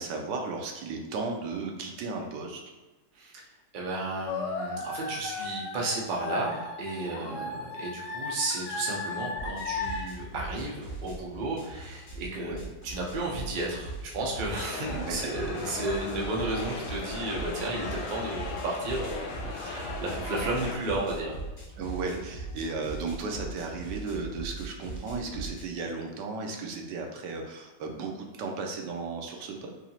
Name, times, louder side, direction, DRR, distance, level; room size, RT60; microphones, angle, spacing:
voice 1, 0.0-2.6 7.2-7.5 12.3-12.7 14.9-15.3 21.8-29.7, right 4 dB, 80° right, 2 dB, 1.2 m, -35 dB
voice 2, 3.7-21.4, right 2 dB, 50° right, -3 dB, 0.6 m, -33 dB
sound 1, 4.3-10.0, left 3 dB, 75° left, 1.1 m, -35 dB
sound 2, 9.4-25.6, right 2 dB, 30° left, 1.2 m, -40 dB
sound 3, 14.5-20.7, left 4 dB, 90° left, 1.3 m, -38 dB
4.2 x 2.8 x 2.7 m, 1.2 s
omnidirectional pair, 1.9 m